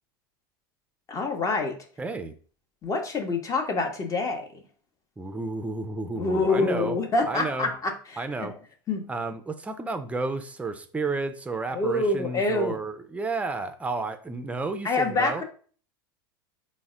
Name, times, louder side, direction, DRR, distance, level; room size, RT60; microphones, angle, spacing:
voice 1, 1.1-1.7 2.8-4.6 6.2-8.6 8.9-9.0 11.7-12.8 14.8-15.4, left 3 dB, 25° left, 4 dB, 0.8 m, -26 dB
voice 2, 2.0-2.3 5.2-7.0 7.3-7.7 8.2-8.5 9.1-15.4, right 3 dB, 10° right, 9 dB, 0.4 m, -31 dB
3.9 x 2.1 x 3.6 m, 0.42 s
hypercardioid pair, 90°, 12 cm